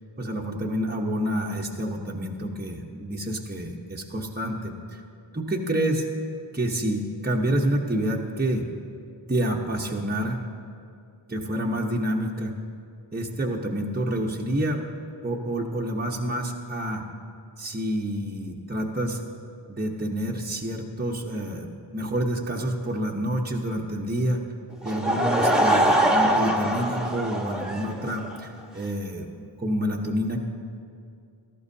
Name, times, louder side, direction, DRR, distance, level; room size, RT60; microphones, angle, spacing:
voice 1, 0.2-5.0 5.3-6.1 6.5-8.7 9.3-10.4 11.3-12.5 13.1-14.8 15.2-17.0 17.6-19.2 19.7-24.4 24.8-30.4, right 1 dB, 20° right, -1 dB, 1.0 m, -28 dB
Laughter / Crowd, 24.8-28.4, right 1 dB, ahead, 1.2 m, -23 dB
17.5 x 13.5 x 2.8 m, 2.5 s
wide cardioid pair, 55°, 50 cm